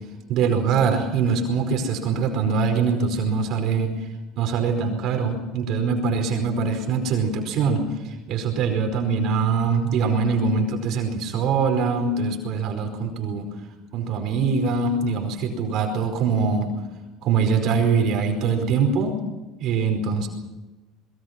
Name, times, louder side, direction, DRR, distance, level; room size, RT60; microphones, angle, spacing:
voice 1, 0.3-3.9 4.3-13.5 13.9-16.7 17.2-19.1 19.6-20.3, right 5 dB, 55° right, 3 dB, 4.8 m, -23 dB
25.0 x 22.0 x 6.0 m, 1.1 s
cardioid pair, 130°, 0 cm